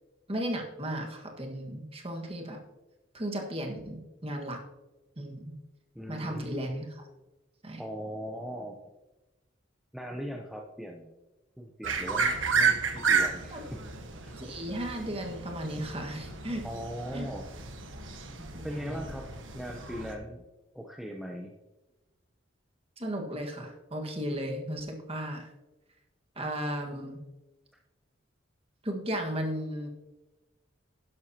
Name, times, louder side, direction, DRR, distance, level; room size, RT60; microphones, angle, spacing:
voice 1, 0.3-2.6 3.1-4.6 5.2-5.5 6.1-7.1 7.6-7.8 13.5-13.6 14.4-16.6 17.1-17.3 18.4-19.1 23.0-25.5 26.3-27.2 28.8-29.9, right 1 dB, 30° right, 2 dB, 1.6 m, -35 dB
voice 2, 5.9-6.7 7.8-8.8 9.9-11.1 11.6-13.8 14.2-14.3 16.6-17.5 18.6-20.4 20.7-21.5, equal, ahead, 0 dB, 0.6 m, -39 dB
sound 1, 11.8-20.1, right 5 dB, 75° right, 1.4 m, -32 dB
11.5 x 11.0 x 2.9 m, 1.1 s
head